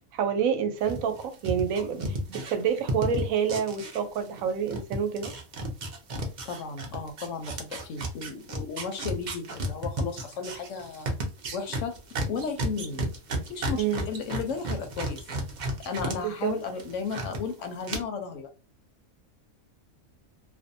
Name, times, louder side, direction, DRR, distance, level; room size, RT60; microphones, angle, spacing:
voice 1, 0.1-5.3 13.7-14.1 16.2-16.5, right 7 dB, 75° right, 0.9 m, -28 dB
sound 1, 0.8-4.4 4.7-16.2 16.5-17.4 17.8-18.0, right 1 dB, 55° right, 0.5 m, -33 dB
voice 2, 6.4-11.1 11.5-11.9 12.3-13.0 13.5-15.2 15.8-18.5, left 5 dB, 70° left, 0.8 m, -34 dB
2.5 x 2.1 x 2.6 m
omnidirectional pair, 1.5 m